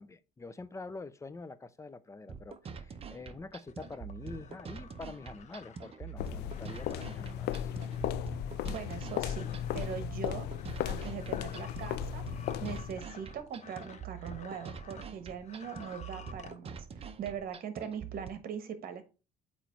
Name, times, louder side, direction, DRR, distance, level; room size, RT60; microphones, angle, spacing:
voice 1, 0.0-7.7, left 3 dB, 15° left, 0.4 m, -46 dB
sound 1, 2.3-18.3, right 6 dB, 35° right, 0.7 m, -45 dB
sound 2, 3.7-15.1 15.4-16.5, left 6 dB, 45° left, 0.8 m, -53 dB
sound 3, 6.2-13.0, left 11 dB, 80° left, 0.5 m, -36 dB
voice 2, 8.7-9.5 9.7-10.5 10.8-16.9 17.2-19.0, right 7 dB, 60° right, 1.2 m, -41 dB
8.1 x 3.1 x 4.5 m
cardioid pair, 110°, 17 cm